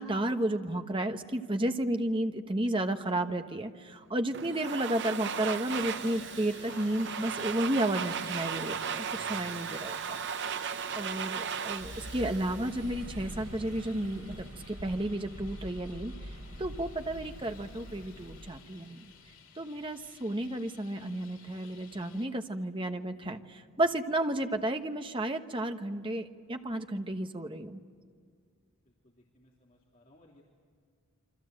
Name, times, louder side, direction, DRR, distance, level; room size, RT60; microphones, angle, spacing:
voice 1, 0.0-10.2 10.9-16.1 16.6-19.0 19.6-27.8, right 1 dB, 25° right, 6 dB, 1.1 m, -32 dB
Domestic sounds home sounds, 4.3-13.3, right 7 dB, 55° right, 0.7 m, -36 dB
Traffic noise roadway noise, 5.7-22.3, left 5 dB, 70° left, 4.5 m, -54 dB
sound 1, 11.8-18.5, equal, 80° right, 2.9 m, -44 dB
voice 2, 28.8-30.4, left 1 dB, 35° left, -3 dB, 3.2 m, -62 dB
28.5 x 24.5 x 7.8 m, 2.1 s
head